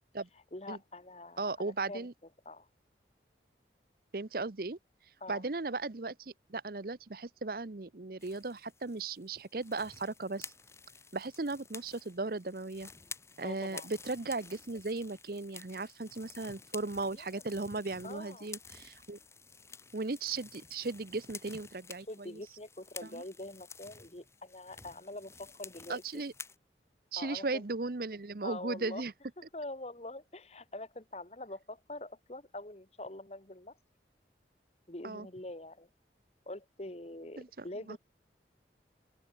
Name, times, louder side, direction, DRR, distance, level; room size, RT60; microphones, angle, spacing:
voice 1, 0.5-2.1 2.4-2.7 5.2-5.4 13.4-13.9 17.1-17.4 18.0-18.5 22.1-26.0 27.2-27.6 28.4-29.0 29.5-33.8 34.9-35.9 36.4-38.0, left 2 dB, 35° left, 1.7 m, -44 dB
voice 2, 1.4-2.1 4.1-4.8 5.3-10.5 11.1-12.9 13.4-19.2 19.9-22.4 23.1-23.2 25.9-26.3 27.1-29.1 35.0-35.3 37.4-38.0, right 3 dB, 55° right, 0.8 m, -37 dB
sound 1, 8.2-26.6, left 5 dB, 15° left, 2.8 m, -51 dB
open air
head